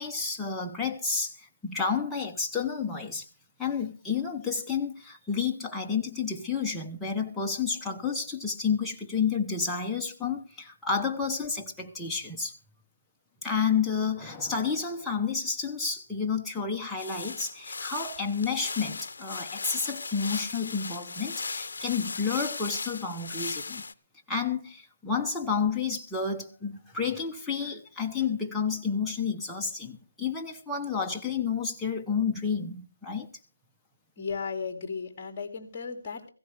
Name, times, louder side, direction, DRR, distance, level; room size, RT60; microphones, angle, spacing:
voice 1, 0.0-1.3 1.6-3.2 3.6-12.5 13.4-23.8 24.3-33.3, left 5 dB, 5° left, 0.9 m, -30 dB
sound 1, 17.0-23.9, left 4 dB, 55° left, 0.7 m, -37 dB
voice 2, 34.2-36.3, left 5 dB, 25° left, 2.5 m, -35 dB
17.0 x 15.5 x 3.4 m
figure-of-eight pair, 165°, 0 cm